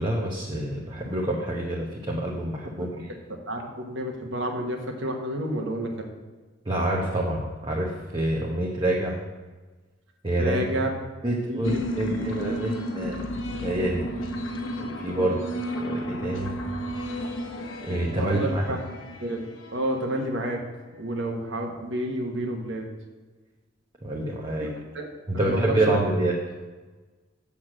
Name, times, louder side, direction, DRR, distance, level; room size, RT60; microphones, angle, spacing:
voice 1, 0.0-3.1 6.6-9.1 10.2-10.6 11.2-13.3 13.6-14.1 14.8-15.4 15.7-16.6 17.8-18.6 24.0-24.7 25.3-26.4, right 1 dB, 25° right, -3 dB, 1.0 m, -27 dB
voice 2, 3.5-6.1 10.4-10.9 11.5-11.8 12.5-12.6 15.1-15.4 18.1-18.8 19.2-20.6 21.0-22.9 24.6-24.7 24.9-25.1 25.3-26.0, right 1 dB, 65° right, 2 dB, 1.4 m, -30 dB
sound 1, 11.6-20.6, equal, 85° left, 1.4 m, -33 dB
6.9 x 6.3 x 7.7 m, 1.3 s
head